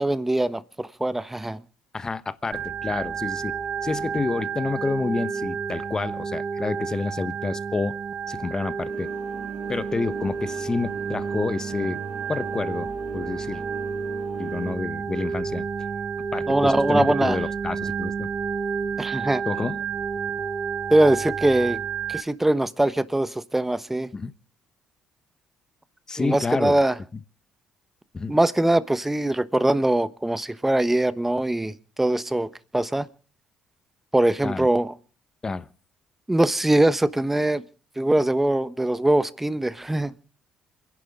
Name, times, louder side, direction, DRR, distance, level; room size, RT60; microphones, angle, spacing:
voice 1, 0.0-1.6 16.5-17.4 19.0-19.4 20.9-21.8 22.1-24.1 26.2-27.0 28.3-32.5 32.7-33.1 34.1-34.9 36.3-37.6 38.0-40.1, right 1 dB, 10° right, 1.1 m, -22 dB
voice 2, 1.9-3.6 3.8-8.0 8.3-9.1 9.7-12.0 12.3-13.6 14.4-15.7 16.3-18.3 19.4-19.8 24.1-24.3 26.1-26.8 27.1-27.2 28.1-28.4 34.4-34.7 35.4-35.7, left 4 dB, 30° left, 1.1 m, -29 dB
Organ, 2.5-22.2, right 6 dB, 45° right, 0.9 m, -30 dB
sound 1, 8.9-14.8, right 6 dB, 65° right, 5.0 m, -42 dB
27.5 x 11.0 x 3.7 m
hypercardioid pair, 60°, 2 cm